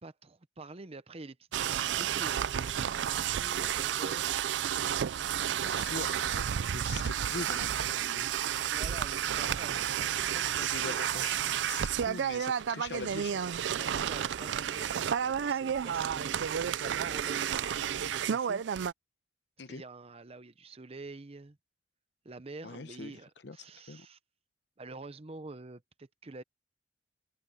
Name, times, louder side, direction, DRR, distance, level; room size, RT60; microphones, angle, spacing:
voice 1, 0.0-4.3 5.6-6.0 8.6-9.9 10.3-11.2 13.7-16.4 16.7-18.6 19.7-21.6 22.2-24.2 24.8-26.4, right 3 dB, 35° right, 0.8 m, -47 dB
sound 1, 1.5-18.9, right 9 dB, 70° right, 0.4 m, -31 dB
voice 2, 5.6-8.3 10.6-13.4 19.6-19.8 22.6-23.1 23.4-23.6 23.9-24.1, left 4 dB, 65° left, 0.9 m, -43 dB
head